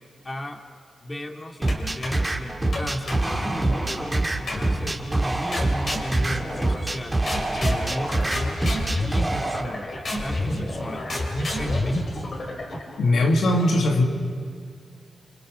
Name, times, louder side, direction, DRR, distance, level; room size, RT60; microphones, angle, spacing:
voice 1, 0.2-0.6 1.0-12.0, equal, 30° left, 3 dB, 2.6 m, -35 dB
sound 1, 1.6-9.6, right 2 dB, 20° right, 2.5 m, -26 dB
sound 2, 1.7-2.3 2.7-3.9 4.5-5.0 5.5-7.0 7.3-13.0, left 1 dB, 60° left, 5.7 m, -30 dB
voice 2, 13.0-14.0, left 1 dB, 80° left, 2 dB, 2.0 m, -19 dB
29.5 x 26.0 x 6.4 m, 2.1 s
cardioid pair, 55°, 0 cm